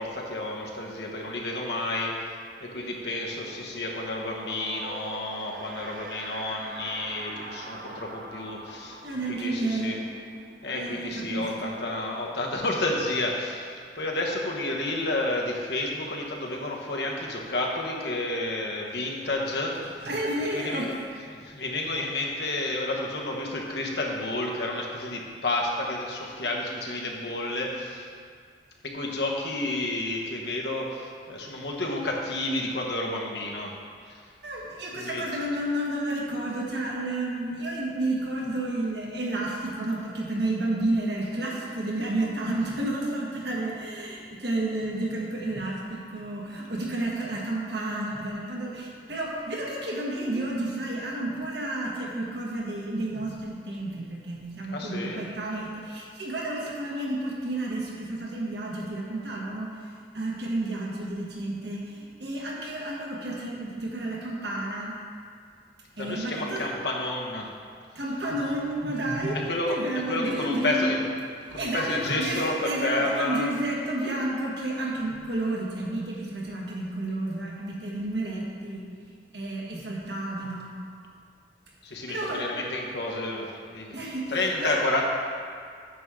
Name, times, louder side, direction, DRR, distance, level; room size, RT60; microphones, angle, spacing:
voice 1, 0.0-2.1 2.6-9.0 9.3-10.0 10.6-19.9 20.5-20.8 21.3-28.1 28.8-33.7 34.1-34.2 34.9-35.2 54.7-55.3 66.0-67.5 69.3-69.8 70.1-71.0 71.5-73.5 81.8-83.9 84.3-85.0, left 2 dB, 70° left, -1 dB, 1.2 m, -30 dB
sound 1, 2.2-12.6, right 2 dB, 45° right, 0.6 m, -44 dB
voice 2, 9.0-10.0 10.7-11.8 20.0-21.0 34.4-64.9 66.0-66.6 67.9-70.9 71.5-78.8 79.3-80.7 82.1-82.5 83.9-84.8, right 1 dB, 70° right, -3 dB, 1.6 m, -31 dB
9.2 x 7.1 x 3.7 m, 2.1 s
head